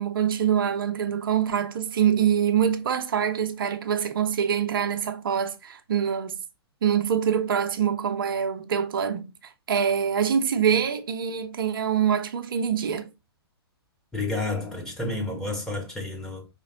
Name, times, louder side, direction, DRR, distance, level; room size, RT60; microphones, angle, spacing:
voice 1, 0.0-6.4 6.8-9.3 9.7-13.1, right 8 dB, 55° right, 0.7 m, -25 dB
voice 2, 14.1-16.5, left 2 dB, 5° left, 1.3 m, -30 dB
5.0 x 3.2 x 2.9 m
figure-of-eight pair, 115°, 14 cm